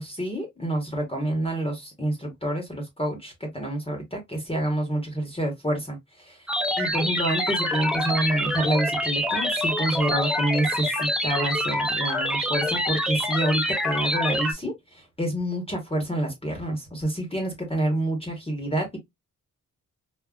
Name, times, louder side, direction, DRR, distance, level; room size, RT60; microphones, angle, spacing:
voice 1, 0.0-6.4 6.8-19.0, right 1 dB, 20° left, 1.0 m, -28 dB
sound 1, 6.5-14.5, equal, ahead, 0.5 m, -26 dB
3.6 x 2.3 x 2.3 m
wide cardioid pair, 130°, 31 cm